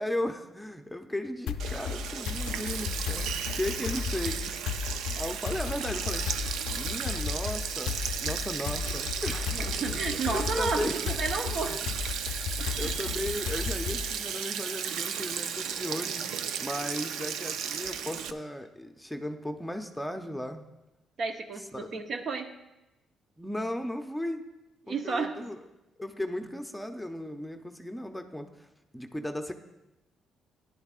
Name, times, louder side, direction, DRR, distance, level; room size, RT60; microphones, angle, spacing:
voice 1, 0.0-4.6 5.1-6.2 6.7-10.9 11.6-11.8 12.6-16.2 16.6-20.6 21.7-21.9 23.4-24.5 24.9-25.6 26.0-28.7 28.9-29.5, left 1 dB, 5° left, 5 dB, 0.7 m, -36 dB
sound 1, 1.5-14.1, left 7 dB, 90° left, 0.5 m, -35 dB
Sink (filling or washing), 1.6-18.3, right 8 dB, 85° right, 0.4 m, -34 dB
voice 2, 9.5-11.8 12.6-13.2 21.2-22.6 24.9-25.4, right 4 dB, 60° right, 5 dB, 0.9 m, -33 dB
14.5 x 10.5 x 2.4 m, 0.97 s
cardioid pair, 90°, 0 cm